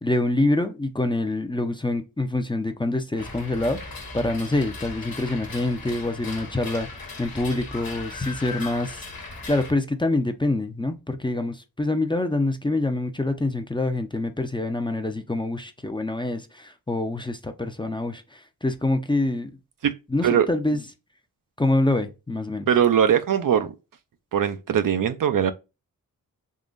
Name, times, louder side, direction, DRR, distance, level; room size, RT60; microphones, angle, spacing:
voice 1, 0.0-3.8 4.1-9.0 9.5-19.5 20.1-20.8 21.6-22.7, left 2 dB, 15° left, 0.6 m, -26 dB
sound 1, 3.2-9.7, left 3 dB, 70° left, 1.2 m, -38 dB
voice 2, 22.7-23.7 24.3-25.5, right 8 dB, 60° right, 0.6 m, -21 dB
3.7 x 2.9 x 2.5 m
cardioid pair, 60°, 36 cm